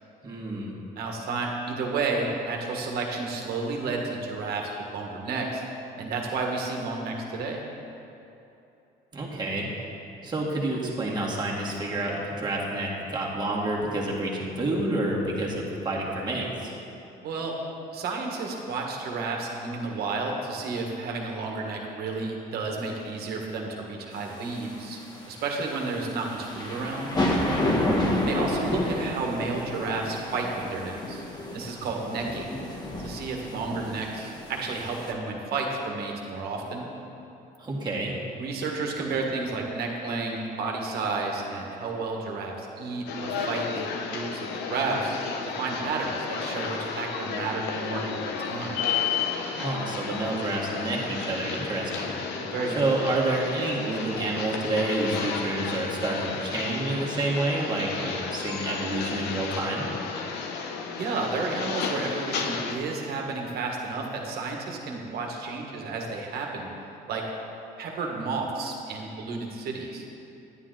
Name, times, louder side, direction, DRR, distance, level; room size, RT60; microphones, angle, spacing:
voice 1, 0.2-0.7 9.1-9.7 10.2-16.7 27.6-28.0 37.6-38.1 49.5-52.1 52.8-59.9, right 2 dB, 25° right, -4 dB, 2.0 m, -29 dB
voice 2, 0.9-5.6 6.0-7.6 17.2-17.5 17.9-25.0 25.2-27.1 28.3-32.5 33.0-36.9 38.4-45.2 45.6-48.8 52.4-52.8 60.9-66.7 67.1-67.2 67.8-70.0, right 3 dB, 70° right, 0 dB, 1.6 m, -31 dB
sound 1, 24.2-35.1, left 1 dB, 25° left, 1.3 m, -30 dB
sound 2, 43.1-62.8, left 5 dB, 85° left, 0.9 m, -33 dB
11.0 x 9.8 x 3.9 m, 2.8 s
cardioid pair, 110°, 17 cm